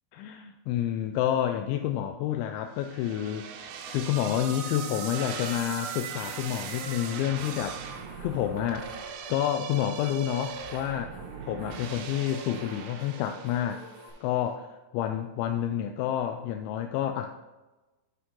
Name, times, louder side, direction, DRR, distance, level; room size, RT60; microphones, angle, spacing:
voice 1, 0.1-7.8 8.2-8.9 9.3-11.2 11.4-13.8 14.2-17.3, left 11 dB, 85° left, 6 dB, 2.8 m, -29 dB
sound 1, 2.8-14.1, right 7 dB, 85° right, 3.3 m, -39 dB
sound 2, 6.7-14.1, left 2 dB, 55° left, 1.6 m, -48 dB
11.5 x 5.6 x 3.8 m, 1.2 s
omnidirectional pair, 5.4 m